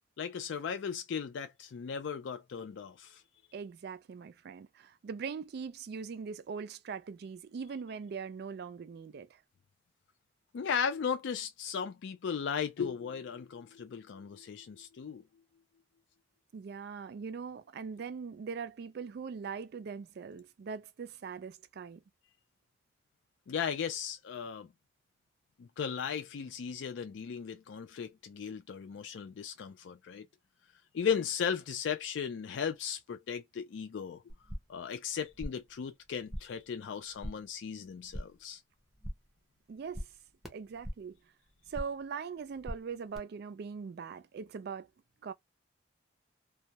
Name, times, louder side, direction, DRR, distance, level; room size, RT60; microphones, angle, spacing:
voice 1, 0.2-3.2 10.5-15.2 23.5-24.7 25.6-30.3 30.9-34.2 34.7-38.6, left 7 dB, 70° left, 0.4 m, -36 dB
voice 2, 3.5-9.4 16.5-22.0 39.7-40.1 40.5-41.2 41.7-44.9 45.2-45.3, right 6 dB, 55° right, 0.3 m, -41 dB
sound 1, 34.3-34.9 35.1-35.8 36.0-36.7 36.9-37.5 37.8-38.5 38.8-39.4 39.7-41.2 41.5-42.1 42.4-43.2, equal, ahead, 0.6 m, -43 dB
2.2 x 2.0 x 2.7 m
head